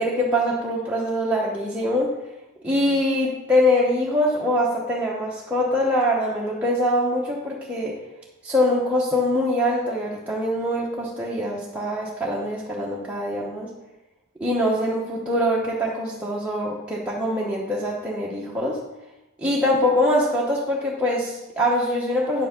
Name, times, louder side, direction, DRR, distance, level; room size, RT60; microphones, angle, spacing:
voice 1, 0.0-2.1 2.6-8.0 8.4-13.7 14.4-18.8 19.4-22.5, left 1 dB, 5° right, -5 dB, 1.0 m, -23 dB
9.3 x 7.9 x 3.7 m, 0.98 s
head